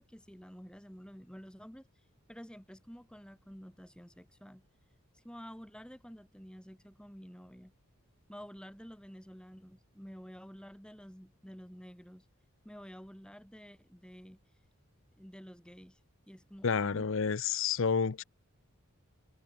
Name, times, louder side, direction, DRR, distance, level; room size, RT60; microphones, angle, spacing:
voice 1, 0.0-1.9 2.3-4.6 5.1-7.7 8.3-12.2 12.6-14.4 15.2-16.0 16.3-17.1, equal, 5° left, 6.6 m, -50 dB
voice 2, 16.6-18.2, left 6 dB, 60° left, 0.6 m, -30 dB
head